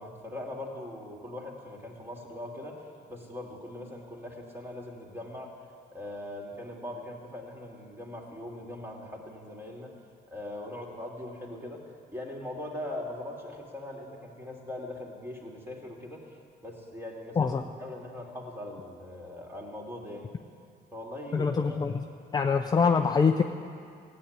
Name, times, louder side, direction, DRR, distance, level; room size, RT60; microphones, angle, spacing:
voice 1, 0.0-5.5 5.9-10.0 10.3-20.4 20.9-22.0 22.6-22.8, left 1 dB, 15° right, -1 dB, 2.9 m, -41 dB
voice 2, 21.3-22.1 22.3-23.4, left 5 dB, 25° left, 4 dB, 0.6 m, -24 dB
15.0 x 9.5 x 8.9 m, 2.2 s
cardioid pair, 110°, 17 cm